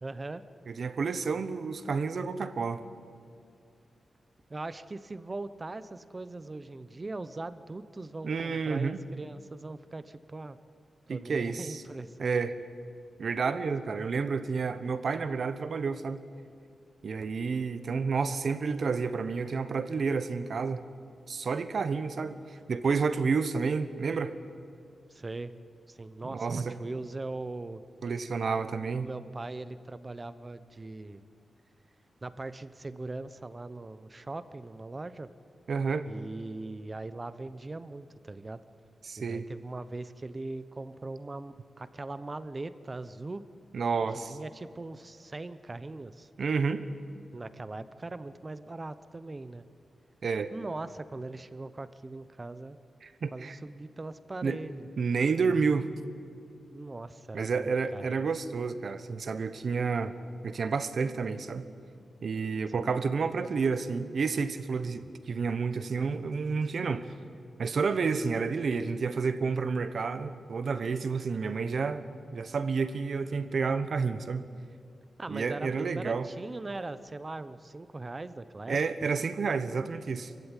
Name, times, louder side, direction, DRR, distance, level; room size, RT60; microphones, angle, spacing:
voice 1, 0.0-0.4 4.5-10.6 11.1-12.5 25.1-25.5 25.9-27.8 29.0-31.2 32.2-35.3 36.1-38.6 39.2-43.4 44.2-46.3 47.3-49.6 50.5-52.8 53.3-54.9 56.7-58.4 62.7-62.9 75.2-79.1, right 2 dB, 20° right, 14 dB, 0.8 m, -40 dB
voice 2, 0.7-2.8 8.2-9.0 11.1-11.8 12.2-12.6 13.2-16.2 17.0-20.8 21.3-22.4 22.7-24.3 26.2-26.8 28.0-29.1 35.7-36.1 39.0-39.5 43.7-44.4 46.4-46.8 50.2-50.5 53.0-53.6 54.4-54.6 55.0-55.9 57.3-60.1 60.4-61.7 62.2-67.1 67.6-72.0 72.3-74.5 75.3-76.3 78.7-80.3, right 5 dB, 50° right, 12 dB, 1.1 m, -30 dB
25.5 x 15.5 x 9.9 m, 2.3 s
wide cardioid pair, 170°, 0 cm